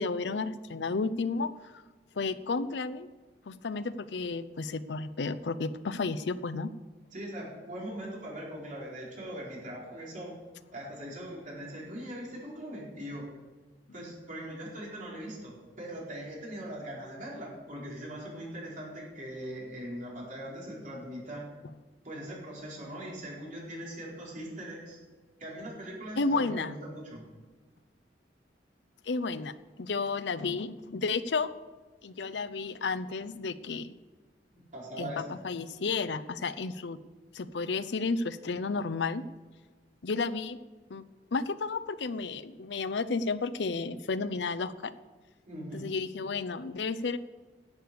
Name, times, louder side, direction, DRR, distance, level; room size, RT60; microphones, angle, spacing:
voice 1, 0.0-1.5 2.2-3.1 3.5-6.7 26.2-26.8 29.1-31.5 32.0-33.9 35.0-37.0 37.3-39.2 40.0-40.6 40.9-41.0 41.3-44.9 45.7-47.2, left 4 dB, 70° left, 13 dB, 0.6 m, -32 dB
voice 2, 7.1-10.4 10.7-13.3 13.9-21.5 22.0-25.0 25.4-27.2 34.5-35.2 45.5-45.9, right 1 dB, 45° right, -4 dB, 4.3 m, -41 dB
11.5 x 8.0 x 6.8 m, 1.3 s
head